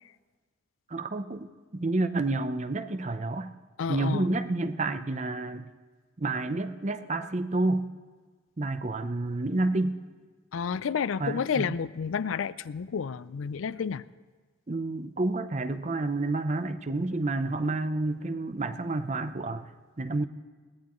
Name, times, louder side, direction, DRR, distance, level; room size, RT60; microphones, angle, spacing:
voice 1, 0.9-3.5 3.9-5.7 6.2-7.9 8.6-10.0 11.2-11.8 14.7-19.7 20.0-20.3, right 2 dB, 35° right, 11 dB, 0.6 m, -29 dB
voice 2, 3.8-4.3 10.5-14.0, left 6 dB, 80° left, 17 dB, 0.4 m, -30 dB
21.5 x 16.5 x 3.1 m, 1.4 s
head